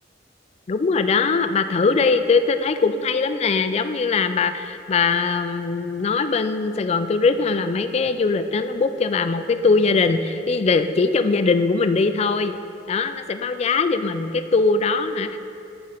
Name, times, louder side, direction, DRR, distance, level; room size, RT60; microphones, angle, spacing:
voice 1, 0.7-12.6 12.9-15.4, left 4 dB, 35° left, 10 dB, 0.3 m, -21 dB
10.5 x 4.2 x 5.0 m, 2.6 s
head